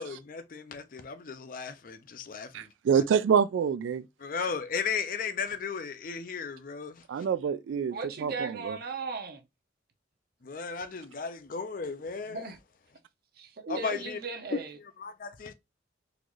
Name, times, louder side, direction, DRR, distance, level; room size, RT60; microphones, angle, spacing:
voice 1, 0.0-3.0 4.2-7.3 10.4-12.5 13.7-14.2 14.5-15.5, left 5 dB, 45° left, 0.5 m, -35 dB
voice 2, 2.5-4.0 7.1-8.8, right 7 dB, 85° right, 0.3 m, -27 dB
voice 3, 7.9-9.4 12.3-12.6 13.4-14.8, right 4 dB, 55° right, 0.6 m, -37 dB
3.9 x 2.5 x 3.0 m
head